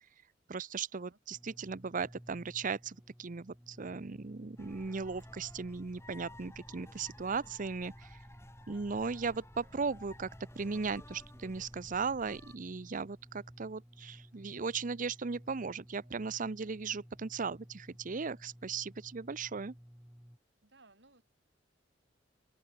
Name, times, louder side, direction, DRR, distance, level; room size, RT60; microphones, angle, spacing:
voice 1, 0.5-8.2 8.7-10.3 10.6-19.7, right 5 dB, 45° right, 0.7 m, -37 dB
sound 1, 1.3-20.4, equal, 5° right, 1.2 m, -55 dB
sound 2, 4.6-12.6, left 1 dB, 15° left, 7.0 m, -55 dB
voice 2, 8.7-9.0 20.6-21.2, right 3 dB, 65° right, 6.8 m, -63 dB
open air
head